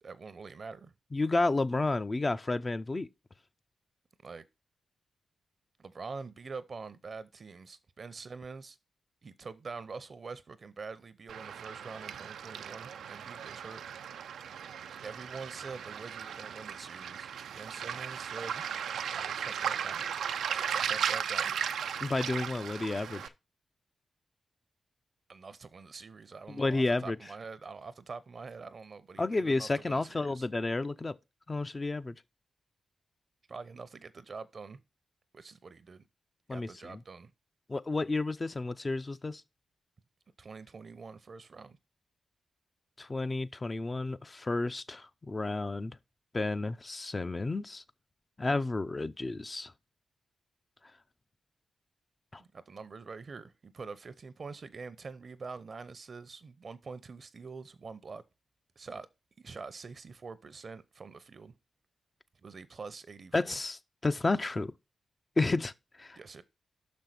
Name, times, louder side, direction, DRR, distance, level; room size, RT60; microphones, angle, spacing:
voice 1, 0.0-0.9 4.2-4.4 5.8-8.8 9.2-13.8 15.0-18.7 19.1-20.1 20.7-21.5 25.3-30.5 33.5-34.8 35.3-36.0 36.5-37.3 40.4-41.8 52.4-58.2 58.8-59.1 59.4-61.5 62.4-63.6 66.2-66.4, right 4 dB, 55° right, 0.7 m, -45 dB
voice 2, 1.1-3.1 22.0-23.2 26.5-27.2 29.2-31.1 31.5-32.1 36.5-37.0 37.7-39.4 43.0-46.0 46.3-47.8 48.4-49.7 52.3-52.4 63.3-64.7 65.4-65.7 66.0-66.2, left 2 dB, 35° left, 0.5 m, -31 dB
Waves surf, 11.3-23.3, right 8 dB, 85° right, 0.4 m, -36 dB
5.9 x 5.3 x 5.9 m
cardioid pair, 55°, 0 cm